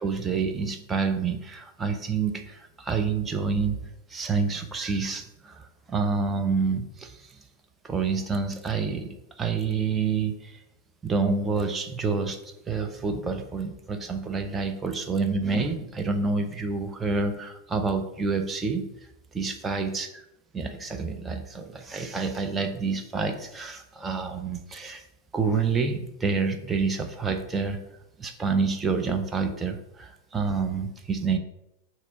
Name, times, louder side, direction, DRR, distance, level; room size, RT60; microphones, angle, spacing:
voice 1, 0.0-3.8 4.1-7.4 7.8-10.6 11.0-12.4 12.7-18.8 19.3-20.2 20.5-25.0 25.3-27.8 28.2-31.4, right 4 dB, 15° right, 5 dB, 0.6 m, -28 dB
6.1 x 3.0 x 5.4 m, 0.85 s
figure-of-eight pair, 90°, 0 cm